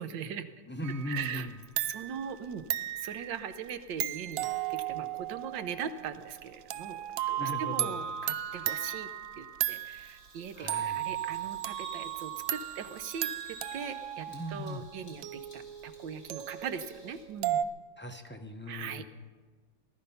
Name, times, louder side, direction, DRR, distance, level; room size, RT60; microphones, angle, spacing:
voice 1, 0.0-0.5 1.1-1.5 1.8-2.6 3.0-7.0 7.3-9.1 9.4-17.6 18.7-19.1, right 7 dB, 90° right, 11 dB, 1.6 m, -40 dB
voice 2, 0.7-1.5 7.4-8.0 10.6-11.0 14.3-14.8 18.0-19.0, left 1 dB, 15° left, 3 dB, 0.4 m, -38 dB
sound 1, 0.8-1.5 1.8-10.3 10.7-17.6, right 12 dB, 70° right, 0.8 m, -36 dB
Bird vocalization bird call bird song, 9.6-17.2, right 1 dB, 45° left, 4.1 m, -53 dB
19.0 x 12.0 x 5.6 m, 1.5 s
omnidirectional pair, 2.0 m